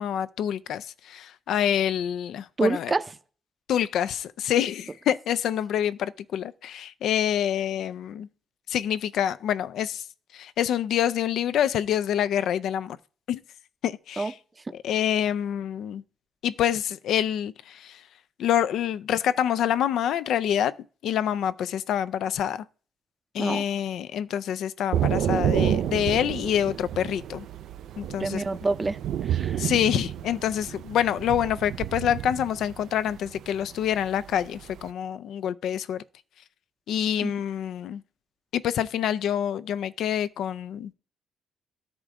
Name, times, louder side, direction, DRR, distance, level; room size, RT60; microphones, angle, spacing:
voice 1, 0.0-2.9 3.7-8.3 8.7-10.0 10.3-13.0 13.3-13.4 13.8-14.3 14.8-16.0 16.4-18.0 18.4-20.8 21.0-22.6 23.3-27.5 28.0-28.4 29.6-36.0 36.9-38.0 38.5-40.9, left 10 dB, 75° left, 0.4 m, -26 dB
voice 2, 2.6-3.0 14.2-14.3 14.7-14.8 23.4-23.6 28.2-29.6 37.2-37.3, right 3 dB, 25° right, 0.5 m, -27 dB
Thunder / Rain, 24.9-34.9, right 10 dB, 75° right, 0.3 m, -30 dB
13.0 x 4.9 x 3.6 m
cardioid pair, 90°, 0 cm